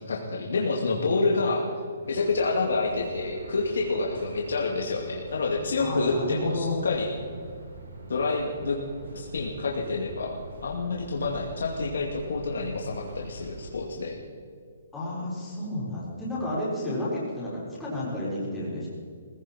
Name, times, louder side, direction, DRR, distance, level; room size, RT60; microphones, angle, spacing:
voice 1, 0.1-1.6 2.1-7.1 8.1-8.8 9.1-14.2, left 3 dB, 85° left, -1 dB, 2.5 m, -28 dB
sound 1, 2.0-13.7, right 2 dB, 90° right, 4.1 m, -44 dB
voice 2, 5.8-6.8 14.9-18.9, left 1 dB, 5° left, -9 dB, 4.2 m, -31 dB
19.0 x 16.5 x 4.4 m, 2.1 s
hypercardioid pair, 175°, 0 cm